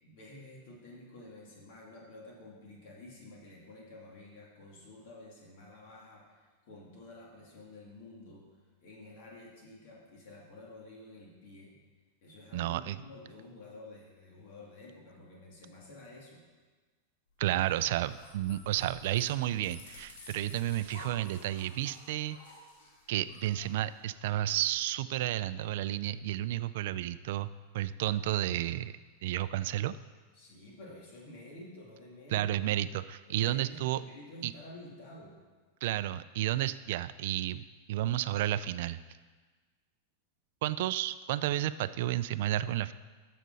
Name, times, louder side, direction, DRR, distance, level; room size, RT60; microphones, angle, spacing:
voice 1, 0.0-8.5 8.8-11.8 12.2-16.4 30.3-32.5 33.3-35.4, left 1 dB, 55° left, -3 dB, 2.5 m, -50 dB
voice 2, 12.5-13.0 17.4-22.4 23.1-27.5 27.7-28.9 29.2-30.0 32.3-34.0 34.4-34.5 35.8-37.6 37.9-39.0 40.6-42.9, right 13 dB, 60° right, 14 dB, 0.3 m, -31 dB
sound 1, 17.4-24.4, left 3 dB, 85° left, 2.1 m, -53 dB
12.5 x 6.7 x 4.1 m, 1.4 s
supercardioid pair, 150°, 0 cm